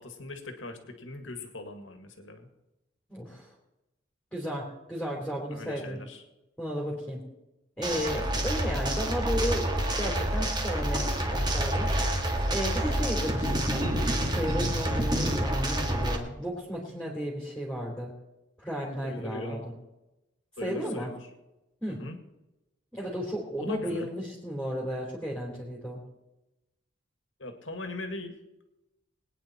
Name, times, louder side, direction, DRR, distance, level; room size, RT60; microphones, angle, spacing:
voice 1, 0.0-2.5 5.5-6.2 19.0-19.6 20.6-21.2 22.0-22.2 23.6-24.1 27.4-28.4, left 2 dB, 90° left, 6 dB, 2.0 m, -39 dB
voice 2, 3.1-3.5 4.3-6.0 6.6-7.2 7.8-9.7 10.0-11.9 12.5-13.9 14.3-18.1 18.6-19.6 20.6-21.1 21.8-22.0 22.9-26.0, equal, 5° left, -4 dB, 3.0 m, -34 dB
sound 1, 7.8-16.2, right 1 dB, 25° right, 2.0 m, -28 dB
22.0 x 9.6 x 4.4 m, 0.97 s
head